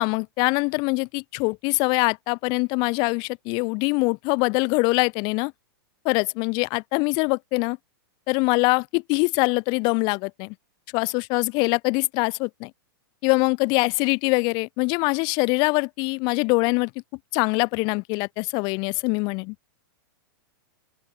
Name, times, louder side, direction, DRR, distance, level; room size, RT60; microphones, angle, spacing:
voice 1, 0.0-5.5 6.0-7.8 8.3-10.5 10.9-12.7 13.2-16.9 17.3-19.5, left 30 dB, 40° left, 0.9 m, -23 dB
open air
hypercardioid pair, 140°, 12 cm